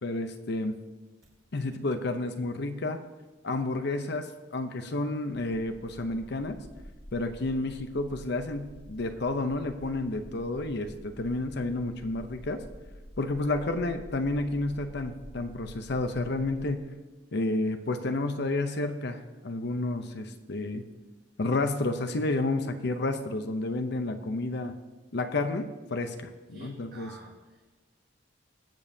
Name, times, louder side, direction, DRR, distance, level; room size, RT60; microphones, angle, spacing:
voice 1, 0.0-0.7 1.5-3.0 3.4-6.6 7.1-12.6 13.2-16.8 17.3-20.8 21.4-24.7 25.1-27.1, left 2 dB, 65° left, 7 dB, 0.7 m, -30 dB
sound 1, 5.3-16.8, equal, 45° left, 1.4 m, -49 dB
voice 2, 26.5-27.7, right 2 dB, 60° right, -1 dB, 1.2 m, -49 dB
21.0 x 7.2 x 2.7 m, 1.2 s
head